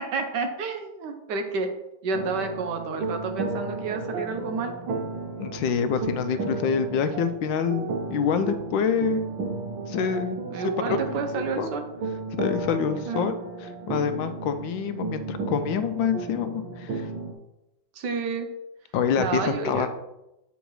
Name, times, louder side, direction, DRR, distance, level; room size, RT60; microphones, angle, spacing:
voice 1, 0.0-1.7 2.0-5.0 10.5-11.9 13.1-13.3 17.9-18.5 19.2-19.9, right 4 dB, 65° right, 6 dB, 1.3 m, -30 dB
sound 1, 2.1-17.3, right 3 dB, 90° right, 1.5 m, -34 dB
voice 2, 5.4-9.2 9.9-11.7 12.3-13.3 13.6-17.1 18.9-19.9, left 7 dB, 80° left, 9 dB, 1.3 m, -27 dB
8.1 x 3.9 x 4.7 m, 0.91 s
omnidirectional pair, 2.1 m